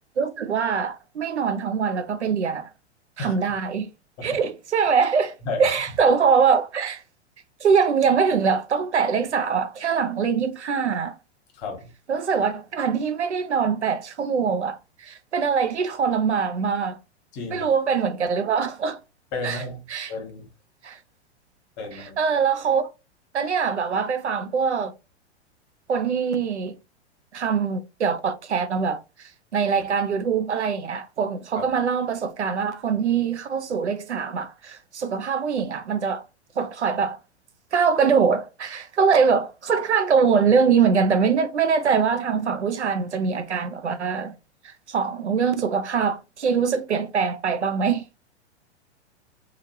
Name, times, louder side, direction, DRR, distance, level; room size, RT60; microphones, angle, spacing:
voice 1, 0.2-2.7 3.2-3.9 4.2-7.0 7.6-11.1 12.1-17.0 17.5-19.0 19.4-19.6 19.9-20.1 20.8-21.0 21.9-22.9 23.3-24.9 25.9-26.7 27.3-36.2 36.6-37.2 37.7-44.3 44.6-48.0, right 6 dB, 80° right, 0.6 m, -23 dB
voice 2, 5.4-5.8 11.5-11.9 17.3-17.7 19.3-19.8 20.1-20.4 21.8-22.2 31.6-31.7, left 3 dB, 40° left, 1.2 m, -32 dB
3.2 x 2.4 x 2.6 m
figure-of-eight pair, 100°, 34 cm